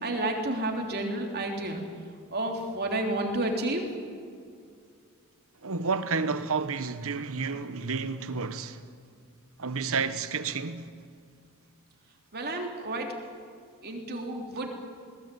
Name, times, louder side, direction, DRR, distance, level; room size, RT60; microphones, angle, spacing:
voice 1, 0.0-1.8 2.3-3.8 12.3-13.1 13.8-14.7, right 1 dB, 45° right, 3.5 m, -30 dB
voice 2, 5.6-8.8 9.6-11.0, right 4 dB, 70° right, 1.2 m, -30 dB
21.5 x 18.0 x 9.2 m
head